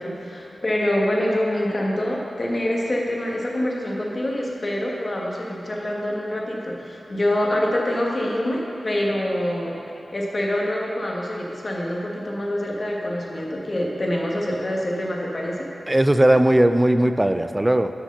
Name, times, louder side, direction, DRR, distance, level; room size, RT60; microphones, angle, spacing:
voice 1, 0.0-9.8 10.1-15.7, left 1 dB, 45° left, -2 dB, 1.5 m, -25 dB
voice 2, 15.9-17.9, right 1 dB, 20° right, 9 dB, 0.4 m, -18 dB
7.9 x 6.3 x 6.6 m, 2.8 s
cardioid pair, 60°, 0 cm